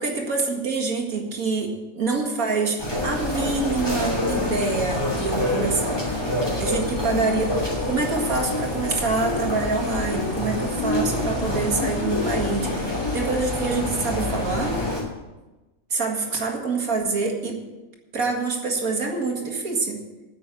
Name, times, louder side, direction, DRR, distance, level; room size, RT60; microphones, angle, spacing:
voice 1, 0.0-6.0 6.3-14.8 15.9-17.6 18.1-20.0, right 4 dB, 85° right, 1 dB, 2.4 m, -26 dB
sound 1, 2.8-15.0, left 2 dB, 15° left, 2.9 m, -26 dB
9.9 x 7.8 x 8.3 m, 1.1 s
omnidirectional pair, 1.5 m